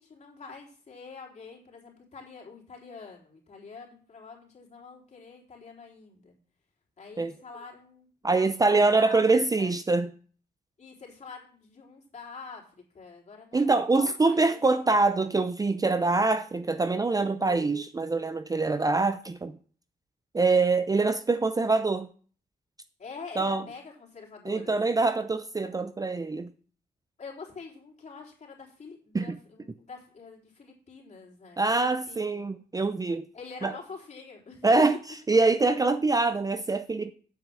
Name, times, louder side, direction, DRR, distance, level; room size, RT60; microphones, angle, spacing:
voice 1, 0.0-6.4 7.0-9.7 10.8-14.6 23.0-25.0 27.2-32.5 33.3-34.7, left 4 dB, 40° left, 4.0 m, -46 dB
voice 2, 8.2-10.1 13.5-19.6 20.3-22.1 23.4-23.6 24.5-26.5 29.1-29.4 31.6-33.2 33.6-33.7 34.6-35.0 35.3-37.1, right 3 dB, 20° right, 0.5 m, -24 dB
8.4 x 6.1 x 7.5 m
cardioid pair, 95°, 17 cm